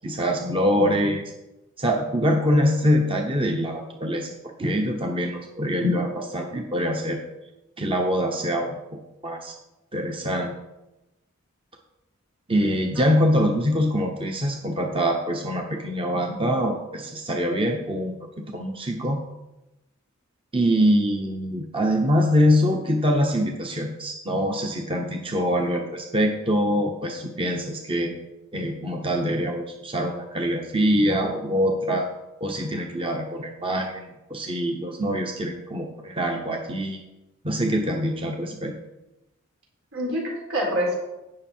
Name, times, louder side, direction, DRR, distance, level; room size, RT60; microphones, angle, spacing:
voice 1, 0.0-1.2 1.8-4.3 4.6-7.2 7.8-9.5 9.9-10.5 12.5-18.2 18.5-19.2 20.5-28.1 28.5-32.1 32.4-37.0 37.4-38.7, equal, 25° right, 2 dB, 1.0 m, -24 dB
voice 2, 12.9-13.4 39.9-41.0, equal, 80° right, -2 dB, 4.3 m, -27 dB
16.5 x 6.3 x 4.5 m, 0.98 s
head